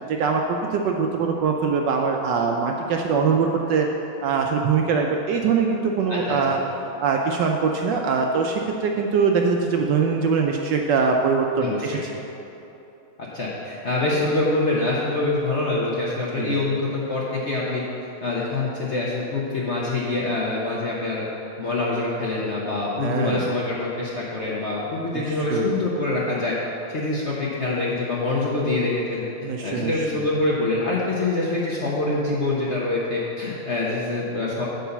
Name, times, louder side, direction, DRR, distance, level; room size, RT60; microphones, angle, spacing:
voice 1, 0.1-3.9 4.2-6.6 7.0-12.0 16.4-16.6 23.0-23.4 25.5-25.7 29.4-30.2, right 5 dB, 75° right, 2 dB, 1.1 m, -22 dB
voice 2, 6.1-6.6 11.6-12.0 13.3-17.8 18.2-21.2 21.6-26.5 26.9-29.2 29.6-34.6, left 2 dB, 50° left, -5 dB, 0.9 m, -25 dB
9.1 x 4.0 x 6.9 m, 3.0 s
omnidirectional pair, 2.3 m